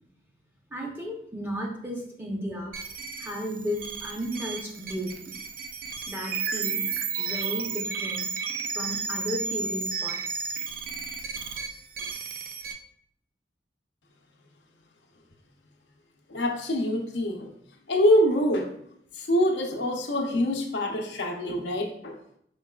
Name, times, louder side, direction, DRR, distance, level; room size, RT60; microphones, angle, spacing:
voice 1, 0.7-2.7 3.2-5.3 6.1-6.8 7.2-8.3 8.7-10.4 12.0-12.1, equal, 10° right, -1 dB, 0.7 m, -34 dB
sound 1, 2.7-12.7, right 5 dB, 50° right, 0.4 m, -33 dB
voice 2, 16.3-17.5 17.9-18.7 19.1-22.2, equal, 75° left, 2 dB, 0.7 m, -25 dB
4.5 x 4.0 x 2.3 m, 0.70 s
head